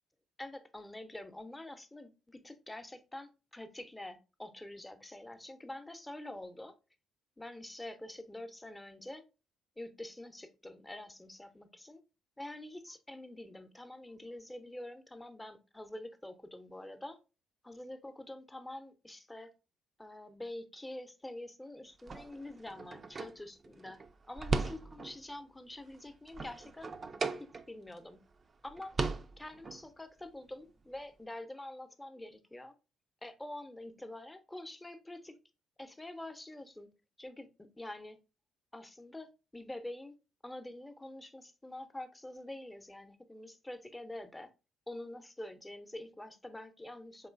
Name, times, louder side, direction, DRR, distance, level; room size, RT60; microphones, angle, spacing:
voice 1, 0.4-6.8 7.4-9.2 9.8-12.0 12.4-17.2 17.6-19.5 20.0-24.0 24.3-26.9 27.4-28.2 28.6-28.9 29.4-32.7 33.2-35.4 35.8-38.2 38.7-40.1 40.4-44.5 44.9-47.3, left 1 dB, 15° left, 0.5 m, -46 dB
sound 1, 22.0-25.3 25.7-28.0 28.3-28.4 28.7-29.8, right 4 dB, 40° right, 0.3 m, -38 dB
3.7 x 3.0 x 2.4 m
hypercardioid pair, 45°, 0 cm